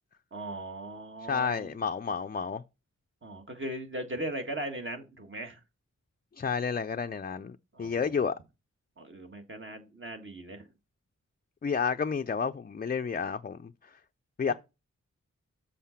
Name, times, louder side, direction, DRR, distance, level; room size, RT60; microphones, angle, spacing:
voice 1, 0.3-1.7 3.2-5.6 7.7-8.1 9.0-10.6, right 1 dB, 40° right, 1.7 m, -38 dB
voice 2, 1.3-2.6 6.4-8.3 11.6-13.7 14.4-14.5, left 6 dB, 30° left, 0.4 m, -30 dB
7.5 x 3.9 x 5.8 m
wide cardioid pair, 70°, 29 cm